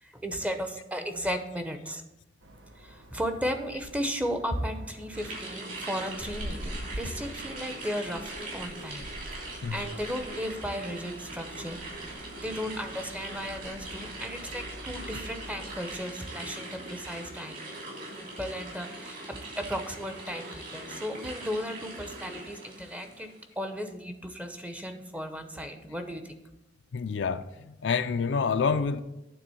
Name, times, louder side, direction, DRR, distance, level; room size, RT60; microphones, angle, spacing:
voice 1, 0.0-2.0 2.7-9.1 9.7-11.8 12.4-17.6 18.1-26.4, equal, 10° right, 0.7 m, -35 dB
sound 1, 2.4-16.0, right 1 dB, 70° right, 1.0 m, -45 dB
sound 2, 5.1-23.4, right 2 dB, 50° right, 2.9 m, -41 dB
voice 2, 26.9-29.0, left 5 dB, 75° left, 0.4 m, -28 dB
9.1 x 3.8 x 6.9 m
head